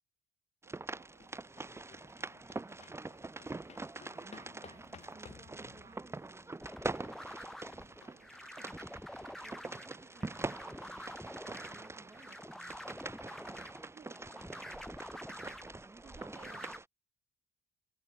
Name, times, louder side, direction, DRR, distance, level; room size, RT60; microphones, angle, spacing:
sound 1, 0.6-16.9, right 3 dB, 15° right, 2.2 m, -44 dB
voice 1, 0.6-4.5 6.2-6.7 7.4-8.8 9.1-11.5 12.0-15.4, right 16 dB, 80° right, 7.9 m, -70 dB
sound 2, 1.0-12.7, left 7 dB, 40° left, 3.3 m, -61 dB
voice 2, 4.3-6.1 13.9-14.3 16.0-16.7, right 6 dB, 35° right, 3.0 m, -58 dB
sound 3, 6.6-16.8, equal, ahead, 1.3 m, -48 dB
cardioid pair, 110°, 17 cm